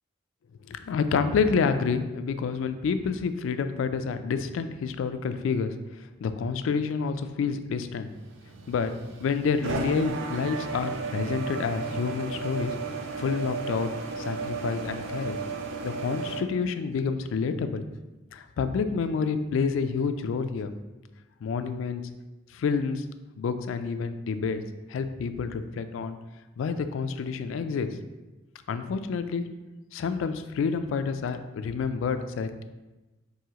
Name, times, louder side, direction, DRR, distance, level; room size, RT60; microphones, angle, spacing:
voice 1, 0.7-8.1 8.7-8.9 9.2-12.7 13.2-13.9 14.2-15.4 15.8-17.8 18.3-20.7 21.4-22.0 22.5-23.0 23.4-24.6 24.9-26.2 26.6-27.9 28.7-29.5 29.9-32.6, left 5 dB, 70° left, 10 dB, 0.3 m, -28 dB
sound 1, 8.1-16.4, right 4 dB, 70° right, 0.4 m, -34 dB
4.8 x 2.7 x 2.9 m, 1.1 s
head